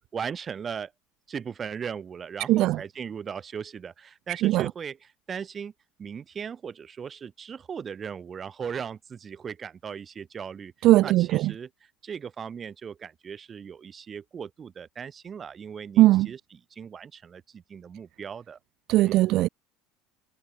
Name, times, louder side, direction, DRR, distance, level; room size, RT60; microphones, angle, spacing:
voice 1, 0.1-0.9 1.3-5.7 6.0-11.7 12.0-18.6 19.0-19.2, right 7 dB, 30° right, 2.9 m, -38 dB
voice 2, 2.5-2.8 4.3-4.7 10.8-11.5 16.0-16.3 18.9-19.5, right 16 dB, 60° right, 0.7 m, -19 dB
supercardioid pair, 105°, 0 cm